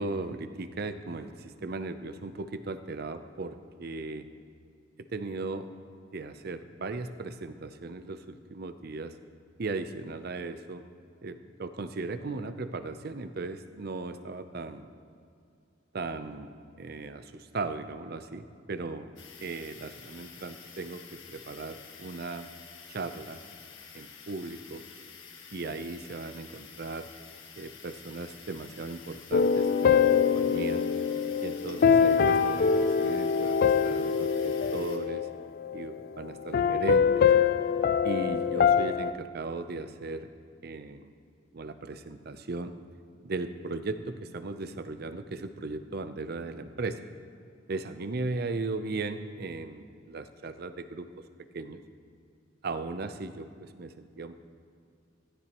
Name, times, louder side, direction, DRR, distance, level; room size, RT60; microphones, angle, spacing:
voice 1, 0.0-4.3 5.1-5.7 6.1-9.1 9.6-10.8 11.2-14.9 15.9-16.5 16.8-19.1 19.4-22.5 22.9-23.4 23.9-24.8 25.5-27.1 27.6-30.8 31.4-35.3 35.7-37.3 38.0-40.3 40.6-41.1 41.5-42.7 43.2-47.0 47.7-51.1 51.5-51.8 52.6-54.4, right 3 dB, 55° right, 10 dB, 0.6 m, -37 dB
sound 1, 19.2-35.0, left 6 dB, 75° left, 1.5 m, -49 dB
sound 2, 29.3-36.0 36.5-39.1, left 6 dB, 50° left, 0.4 m, -24 dB
16.0 x 13.5 x 3.0 m, 2.3 s
head